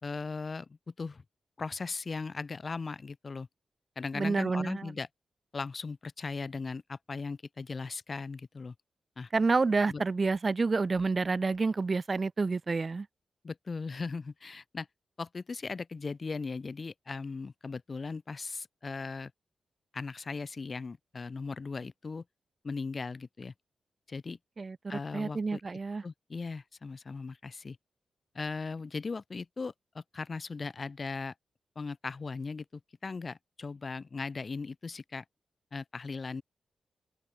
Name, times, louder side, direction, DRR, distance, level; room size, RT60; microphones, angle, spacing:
voice 1, 0.0-1.2 1.6-3.5 4.0-5.1 5.5-8.7 9.2-9.3 9.9-10.0 13.4-14.9 15.2-19.3 19.9-22.2 22.6-23.5 24.1-24.4 24.9-25.6 26.0-27.8 28.3-31.3 31.8-32.6 33.0-35.2 35.7-36.4, left 4 dB, 45° left, 2.9 m, -38 dB
voice 2, 4.1-4.9 9.3-13.1 24.6-26.0, right 4 dB, 45° right, 1.1 m, -29 dB
open air
cardioid pair, 50°, 0 cm